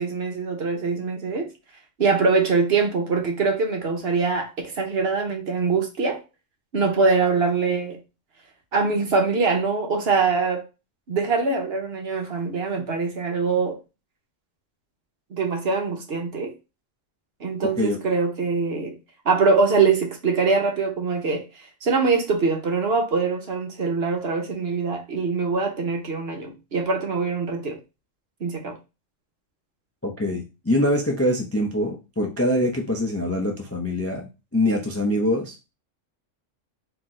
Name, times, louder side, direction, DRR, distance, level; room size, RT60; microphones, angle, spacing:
voice 1, 0.0-1.5 2.0-6.2 6.7-8.0 8.7-10.6 11.1-13.8 15.3-16.5 17.4-18.9 19.2-21.4 21.8-27.8 28.4-28.8, right 4 dB, 55° right, 1.1 m, -23 dB
voice 2, 30.0-35.7, left 1 dB, 20° left, 0.4 m, -24 dB
4.3 x 2.9 x 3.7 m
omnidirectional pair, 1.3 m